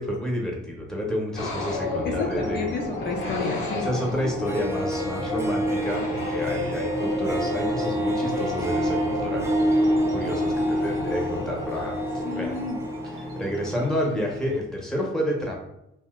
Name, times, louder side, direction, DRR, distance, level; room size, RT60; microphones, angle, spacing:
voice 1, 0.0-2.7 3.7-12.5 13.0-15.6, equal, 5° left, -1 dB, 0.9 m, -30 dB
sound 1, 1.3-14.3, left 2 dB, 85° left, 1.0 m, -32 dB
voice 2, 2.0-3.9 12.2-12.8, left 4 dB, 60° left, 1 dB, 0.6 m, -30 dB
sound 2, 2.1-14.6, right 1 dB, 85° right, 0.6 m, -43 dB
Harp, 4.2-4.3 4.5-14.0, right 1 dB, 15° right, 0.4 m, -28 dB
2.7 x 2.2 x 3.6 m, 0.85 s
cardioid pair, 90°, 20 cm